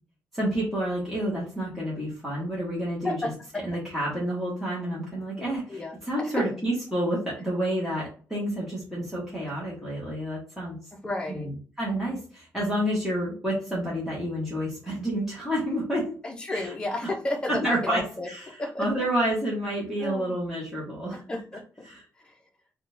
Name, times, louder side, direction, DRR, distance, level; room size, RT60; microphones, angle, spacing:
voice 1, 0.3-3.1 3.6-10.8 11.3-11.5 11.8-16.1 16.5-16.7 17.5-18.0 18.3-18.4 18.8-21.2 21.8-22.0, right 1 dB, 5° right, -7 dB, 1.0 m, -29 dB
voice 2, 3.0-3.6 5.7-6.4 11.0-11.5 16.2-19.0 20.0-20.4 21.1-21.6 22.2-22.4, left 2 dB, 15° left, 2 dB, 0.7 m, -32 dB
3.7 x 2.3 x 2.6 m, 0.42 s
cardioid pair, 150°, 6 cm